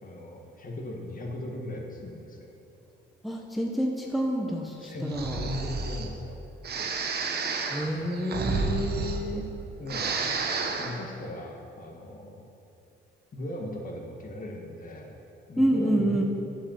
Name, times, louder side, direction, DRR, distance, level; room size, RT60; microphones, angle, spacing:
voice 1, 0.0-2.5 4.8-6.4 7.9-9.1 9.8-10.1 10.8-12.5 13.3-15.2 15.5-16.2, left 1 dB, 45° left, 1 dB, 1.6 m, -39 dB
voice 2, 3.2-5.4 7.7-9.5 15.6-16.2, right 1 dB, ahead, 0 dB, 0.8 m, -28 dB
Breathing, 5.1-6.1 6.6-9.6 9.8-11.0, right 4 dB, 55° right, 1.0 m, -31 dB
8.3 x 5.3 x 7.2 m, 2.7 s
cardioid pair, 90°, 20 cm